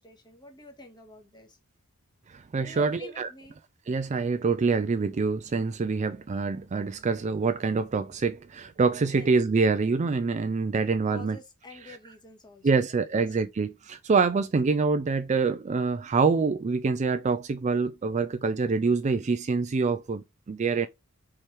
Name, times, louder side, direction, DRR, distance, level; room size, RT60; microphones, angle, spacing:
voice 1, 0.0-1.6 2.6-3.6 9.1-9.3 11.1-12.8 13.1-13.2, left 2 dB, 20° left, 1.4 m, -47 dB
voice 2, 2.3-3.3 3.9-11.4 11.9-12.0 12.6-20.9, right 4 dB, 30° right, 0.4 m, -26 dB
5.0 x 4.4 x 4.5 m
head